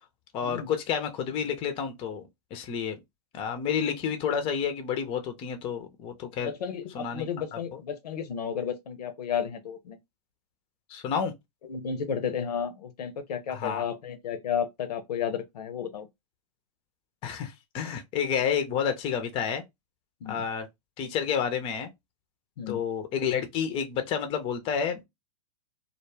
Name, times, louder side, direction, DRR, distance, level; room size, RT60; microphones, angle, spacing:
voice 1, 0.3-2.2 2.5-2.9 3.3-6.5 6.9-7.2 7.5-7.8 10.9-11.3 13.5-13.8 17.2-19.6 20.3-20.7 21.0-21.9 22.7-25.0, left 7 dB, 25° left, 0.5 m, -30 dB
voice 2, 6.2-10.0 11.6-16.1 20.2-20.4 22.6-22.8, left 7 dB, 75° left, 0.6 m, -33 dB
2.2 x 2.0 x 3.1 m
hypercardioid pair, 120°, 20 cm